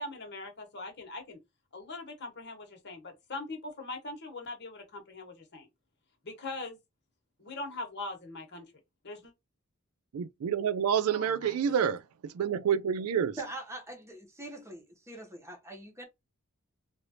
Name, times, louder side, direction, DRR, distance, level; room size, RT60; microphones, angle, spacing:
voice 1, 0.0-1.4 1.7-5.7 6.2-6.8 7.4-8.6 9.0-9.3 11.1-11.7, left 2 dB, 55° left, 1.3 m, -41 dB
voice 2, 10.1-13.4, right 8 dB, 80° right, 0.4 m, -28 dB
voice 3, 13.4-16.1, right 2 dB, 15° right, 1.0 m, -43 dB
3.2 x 2.5 x 2.7 m
head